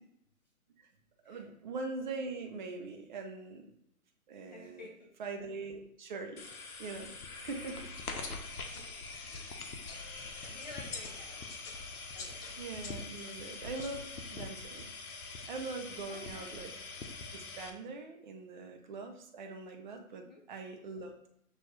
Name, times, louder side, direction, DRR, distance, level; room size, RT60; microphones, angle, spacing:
voice 1, 1.2-3.6 4.3-4.8 5.2-6.5 6.8-7.8 10.3-10.6 12.6-14.0 14.3-14.8 15.5-16.7 17.3-21.3, right 3 dB, 30° right, 4 dB, 0.7 m, -42 dB
voice 2, 4.5-5.1 7.5-7.6 8.1-8.3 8.7-8.9 9.9-10.2 10.5-11.5 12.1-12.4 16.1-16.6 20.2-20.4, left 2 dB, 30° left, 1 dB, 0.6 m, -51 dB
sound 1, 6.4-17.7, left 3 dB, 75° left, 1.0 m, -44 dB
sound 2, 7.4-14.4, left 4 dB, 55° left, 1.0 m, -51 dB
6.1 x 2.6 x 3.2 m, 0.73 s
hypercardioid pair, 145°, 44 cm